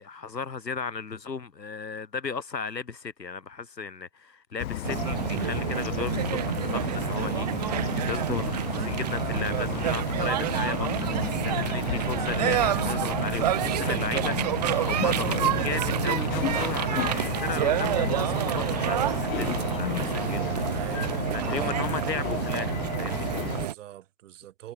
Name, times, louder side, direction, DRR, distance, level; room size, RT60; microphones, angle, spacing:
voice 1, 0.0-10.9 11.1-20.7 21.3-23.3, left 5 dB, 90° left, 4.7 m, -35 dB
Bird vocalization bird call bird song, 4.6-23.7, left 12 dB, 60° left, 0.6 m, -33 dB
sound 1, 4.8-23.7, right 12 dB, 25° right, 0.5 m, -28 dB
sound 2, 11.6-23.3, left 4 dB, 5° left, 1.3 m, -46 dB
voice 2, 20.7-21.8 22.1-22.3 23.3-24.7, right 13 dB, 50° right, 4.4 m, -43 dB
hypercardioid pair, 135°, 48 cm